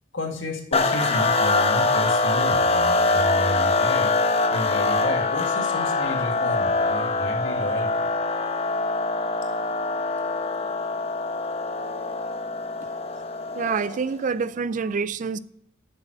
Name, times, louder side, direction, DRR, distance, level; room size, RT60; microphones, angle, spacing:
voice 1, 0.1-4.1 4.5-8.1, left 1 dB, 75° left, 1.9 m, -31 dB
sound 1, 0.7-14.1, left 3 dB, 30° left, 0.9 m, -24 dB
voice 2, 13.5-15.4, right 5 dB, 40° right, 0.4 m, -26 dB
7.1 x 6.5 x 7.6 m
head